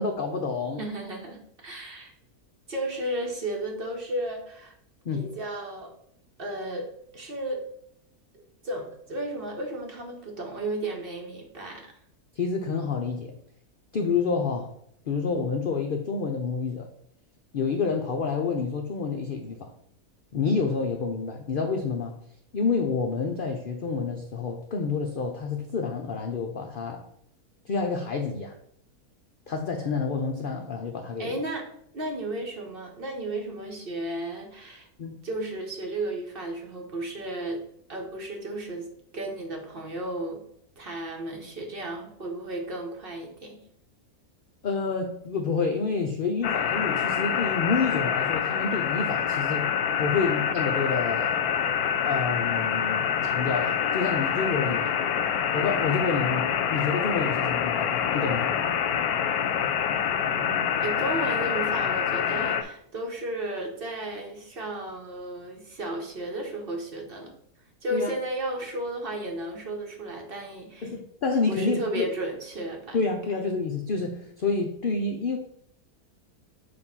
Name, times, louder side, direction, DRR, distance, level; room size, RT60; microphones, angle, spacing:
voice 1, 0.0-0.8 5.0-5.3 12.3-13.3 13.9-14.7 15.1-16.9 17.5-19.7 20.3-22.1 22.5-27.1 27.6-28.6 29.5-31.4 35.0-35.2 44.6-49.7 50.0-51.4 52.1-55.0 55.5-58.5 67.9-68.1 70.8-72.1 72.9-75.4, left 4 dB, 70° left, 0.5 m, -28 dB
voice 2, 0.8-2.1 2.7-4.8 5.1-5.9 6.4-7.7 8.3-11.9 31.2-31.7 31.9-34.9 35.2-38.9 39.1-40.4 40.8-43.6 60.1-67.3 67.8-70.9 71.5-73.0, right 1 dB, 45° right, 1.0 m, -34 dB
sound 1, 46.4-62.6, left 8 dB, 90° left, 1.1 m, -26 dB
6.6 x 2.5 x 5.6 m
omnidirectional pair, 1.6 m